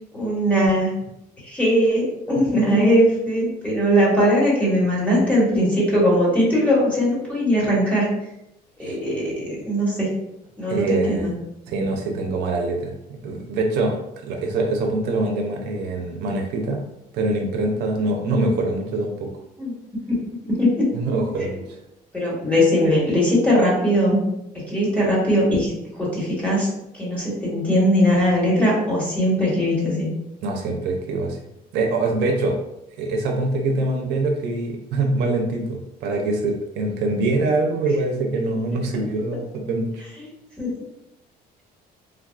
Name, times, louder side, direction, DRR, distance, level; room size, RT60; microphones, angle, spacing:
voice 1, 0.1-0.9 1.4-8.1 8.8-9.3 9.6-10.1 10.6-11.3 19.6-19.7 20.5-20.9 22.1-24.2 24.7-26.7 26.9-30.1 40.6-40.7, equal, 10° left, -6 dB, 1.5 m, -20 dB
voice 2, 10.7-11.3 11.7-16.8 17.1-19.3 20.9-21.8 30.4-31.4 31.7-32.6 33.0-40.0, right 2 dB, 85° right, 2 dB, 0.5 m, -24 dB
3.4 x 2.3 x 2.4 m, 0.86 s
cardioid pair, 110°, 17 cm